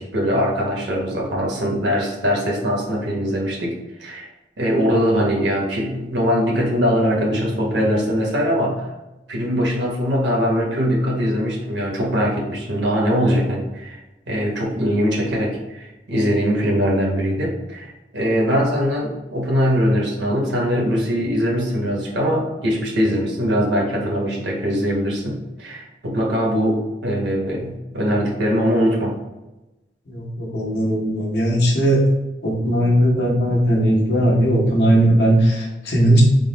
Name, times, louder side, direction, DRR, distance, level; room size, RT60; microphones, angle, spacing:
voice 1, 0.0-3.7 4.0-4.3 4.6-8.8 9.3-14.0 14.3-29.1, equal, 85° right, -2 dB, 1.1 m, -21 dB
voice 2, 30.1-32.0 32.4-36.2, right 1 dB, 70° left, -3 dB, 1.0 m, -18 dB
3.9 x 2.0 x 3.9 m, 1.0 s
head